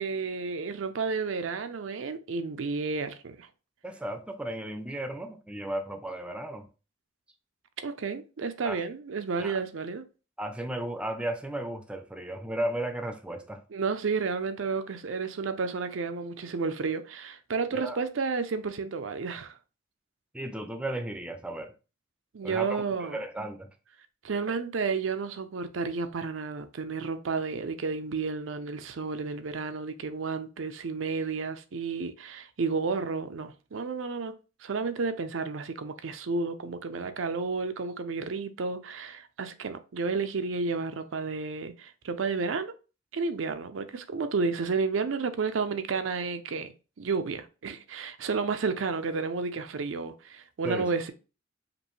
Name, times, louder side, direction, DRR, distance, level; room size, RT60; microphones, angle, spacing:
voice 1, 0.0-3.5 7.8-10.0 13.7-19.5 22.3-23.2 24.2-34.4 34.6-42.7 43.1-46.7 47.0-51.1, right 4 dB, 90° right, 0.5 m, -31 dB
voice 2, 3.8-6.7 8.6-8.8 9.4-9.6 10.4-13.6 17.7-18.0 20.3-21.7 22.4-23.7 50.6-50.9, right 1 dB, 5° right, 0.5 m, -35 dB
5.1 x 2.6 x 3.1 m
head